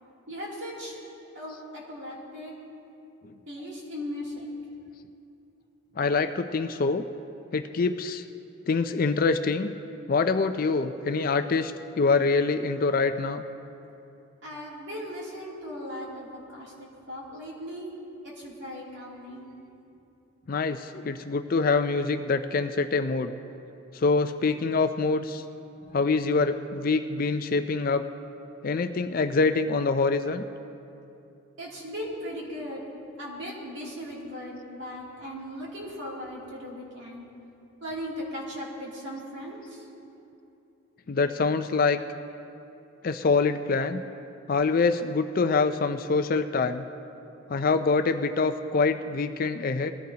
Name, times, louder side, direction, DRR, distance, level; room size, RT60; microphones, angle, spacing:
voice 1, 0.3-1.0 1.3-2.5 3.5-4.5 14.4-17.9 18.2-19.5 25.8-25.9 31.6-32.8 33.2-37.3 37.8-39.8, equal, 60° right, -4 dB, 2.8 m, -38 dB
voice 2, 6.0-7.1 7.5-8.2 8.7-9.7 10.1-13.4 20.5-23.3 23.9-25.4 25.9-28.1 28.6-30.4 41.1-42.0 43.0-44.0 44.5-46.9 47.5-49.9, left 4 dB, 40° left, 9 dB, 0.4 m, -25 dB
21.0 x 14.5 x 2.9 m, 2.8 s
head